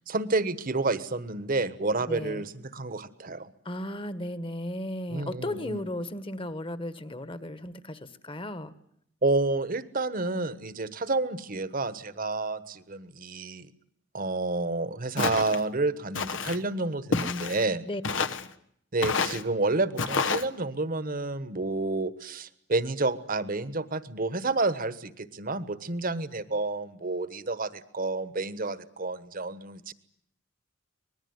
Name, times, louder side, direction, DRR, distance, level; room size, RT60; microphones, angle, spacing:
voice 1, 0.1-3.5 5.1-5.8 9.2-13.7 14.1-17.8 18.9-29.9, right 3 dB, 50° right, 14 dB, 1.3 m, -29 dB
voice 2, 2.1-2.4 3.6-8.7 17.8-18.0, left 1 dB, 30° left, 13 dB, 1.4 m, -35 dB
Walk footsteps, 15.2-15.6 16.1-16.6 17.1-17.6 18.0-18.5 19.0-19.4 20.0-20.4, left 5 dB, 90° left, 1.2 m, -29 dB
24.5 x 20.0 x 9.6 m, 0.69 s
head